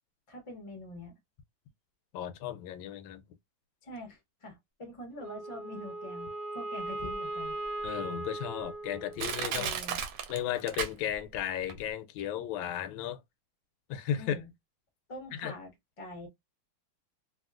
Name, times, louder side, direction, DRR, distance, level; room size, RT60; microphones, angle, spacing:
voice 1, 0.3-1.2 3.8-7.6 9.5-10.0 14.2-14.5 15.1-15.7 16.0-16.3, left 1 dB, 45° left, 0.4 m, -44 dB
voice 2, 2.1-3.2 7.8-9.7 10.3-13.2 13.9-14.4 15.4-15.5, left 10 dB, 90° left, 1.3 m, -34 dB
Wind instrument woodwind instrument, 5.2-9.6, right 2 dB, 45° right, 0.9 m, -38 dB
Crushing, 7.1-7.2 7.8-7.9 8.6-8.7 9.2-11.4 11.7-11.8, right 7 dB, 75° right, 1.2 m, -34 dB
2.9 x 2.6 x 2.4 m
omnidirectional pair, 2.1 m